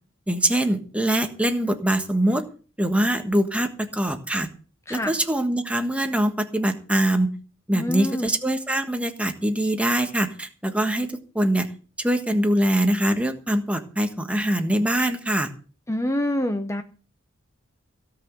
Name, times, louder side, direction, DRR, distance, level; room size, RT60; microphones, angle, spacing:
voice 1, 0.3-2.4 2.8-4.5 4.9-7.3 7.7-11.1 11.3-11.7 12.0-15.5, right 1 dB, 5° right, 6 dB, 1.4 m, -23 dB
voice 2, 7.7-8.3 15.9-16.8, left 1 dB, 15° left, 8 dB, 0.8 m, -26 dB
17.0 x 6.0 x 8.2 m, 0.39 s
head